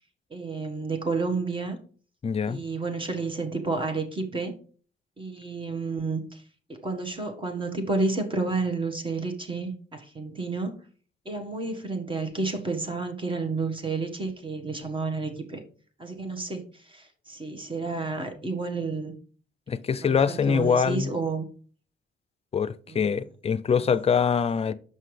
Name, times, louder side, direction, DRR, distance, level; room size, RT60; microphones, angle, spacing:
voice 1, 0.3-1.8 2.5-4.5 5.2-6.4 6.7-10.7 11.2-15.6 16.0-19.1 20.0-21.5 22.9-23.1, right 3 dB, 25° right, 1.4 m, -31 dB
voice 2, 2.2-2.6 19.7-21.1 22.5-24.7, left 6 dB, 30° left, 0.4 m, -24 dB
5.8 x 5.6 x 3.2 m
cardioid pair, 90°, 20 cm